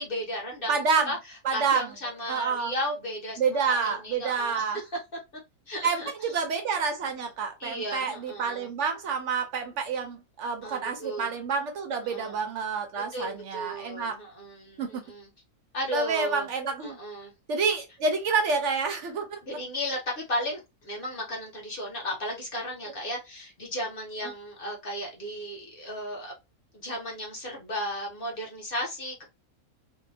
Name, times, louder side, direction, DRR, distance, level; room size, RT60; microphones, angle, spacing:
voice 1, 0.0-4.9 5.7-6.3 7.2-7.3 7.6-8.7 10.6-11.3 12.0-12.4 13.1-15.3 15.7-16.5 16.8-17.3 19.4-26.3 26.7-29.2, equal, 45° left, 0.9 m, -35 dB
voice 2, 0.7-1.1 1.4-1.9 2.3-2.7 3.4-4.8 5.8-14.2 14.8-14.9 15.9-17.0 17.5-19.4, right 5 dB, 65° right, 0.7 m, -28 dB
2.7 x 2.1 x 2.6 m
omnidirectional pair, 1.7 m